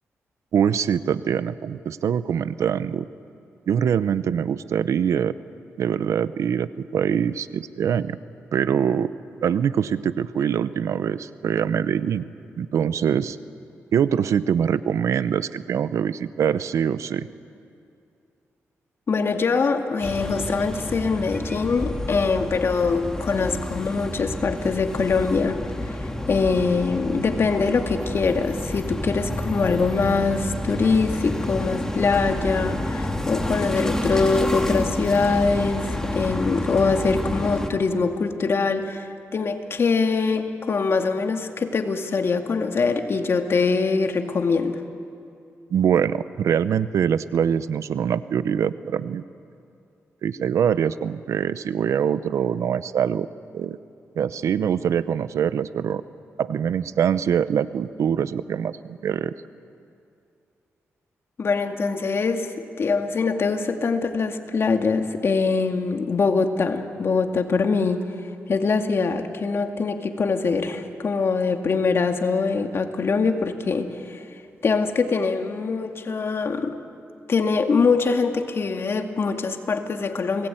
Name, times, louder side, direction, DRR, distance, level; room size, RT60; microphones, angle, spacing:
voice 1, 0.5-3.1 3.7-5.3 5.8-8.2 8.5-9.1 9.4-12.2 12.6-13.4 13.9-17.3 45.7-49.2 50.2-53.3 53.5-53.8 54.2-56.0 56.4-59.3, right 8 dB, 80° right, 14 dB, 0.8 m, -23 dB
voice 2, 19.1-25.6 25.9-44.8 61.4-68.1 68.5-74.2 74.6-76.8 77.3-80.5, left 4 dB, 55° left, 5 dB, 2.2 m, -23 dB
sound 1, 20.0-37.7, left 1 dB, 10° left, 2.7 m, -29 dB
29.5 x 20.0 x 9.1 m, 2.5 s
cardioid pair, 80°, 5 cm